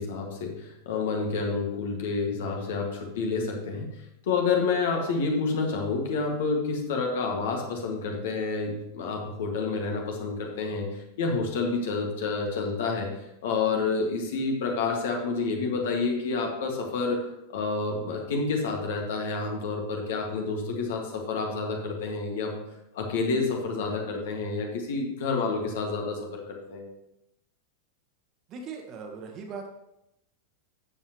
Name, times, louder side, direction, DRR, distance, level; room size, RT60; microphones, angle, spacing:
voice 1, 0.0-4.0 4.2-13.1 13.4-17.2 17.5-22.6 22.9-26.9, left 4 dB, 55° left, 1 dB, 1.8 m, -29 dB
voice 2, 28.5-29.7, right 5 dB, 35° right, 3 dB, 1.6 m, -39 dB
12.0 x 7.6 x 3.0 m, 0.86 s
figure-of-eight pair, 90°, 0 cm